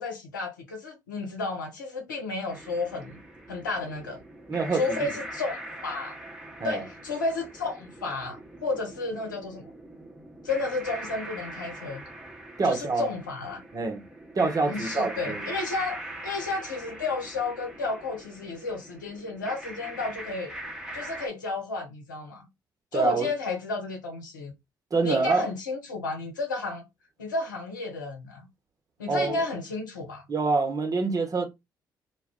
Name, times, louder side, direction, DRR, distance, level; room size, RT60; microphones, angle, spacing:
voice 1, 0.0-3.1 3.5-4.2 4.7-6.2 6.6-9.7 10.4-12.0 12.6-13.6 14.7-20.5 20.9-22.5 22.9-24.5 25.0-26.8 27.2-28.5 29.0-30.2, left 3 dB, 85° left, 0.6 m, -32 dB
sound 1, 2.5-21.3, right 1 dB, 5° right, 0.9 m, -42 dB
voice 2, 4.5-5.1 6.6-6.8 12.6-13.0 13.7-14.0 14.3-15.5 22.9-23.3 24.9-25.5 29.1-29.4 30.3-31.5, right 4 dB, 35° right, 0.9 m, -26 dB
2.3 x 2.1 x 3.5 m
figure-of-eight pair, 45°, 10 cm